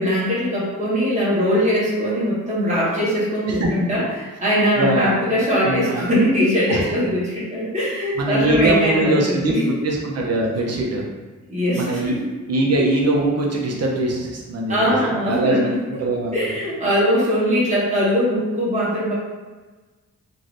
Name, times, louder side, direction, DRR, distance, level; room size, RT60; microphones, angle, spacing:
voice 1, 0.0-9.8 11.5-12.5 14.7-15.8 16.3-19.1, equal, 25° right, -8 dB, 1.1 m, -21 dB
voice 2, 4.8-5.1 5.6-6.0 6.7-6.9 8.2-11.0 11.7-12.2 12.5-16.5, right 2 dB, 55° right, -1 dB, 0.6 m, -22 dB
2.6 x 2.6 x 3.2 m, 1.3 s
wide cardioid pair, 175°, 30 cm